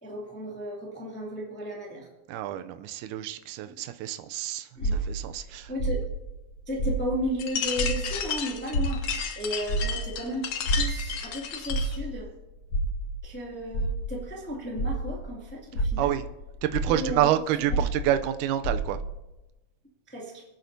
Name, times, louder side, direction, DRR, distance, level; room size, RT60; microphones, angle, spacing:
voice 1, 0.0-2.1 4.7-5.0 5.4-6.0 6.7-12.3 13.2-16.2 16.9-17.3 17.7-17.9 20.1-20.4, equal, 5° left, -3 dB, 1.3 m, -34 dB
voice 2, 2.3-5.7 16.0-16.2 16.6-19.0, right 12 dB, 85° right, 9 dB, 1.8 m, -28 dB
sound 1, 4.8-7.5 7.7-15.3 15.7-19.2, right 1 dB, 60° left, 1.3 m, -30 dB
sound 2, 7.4-12.0, left 8 dB, 75° left, 1.4 m, -33 dB
23.0 x 9.3 x 2.7 m, 1.0 s
omnidirectional pair, 4.1 m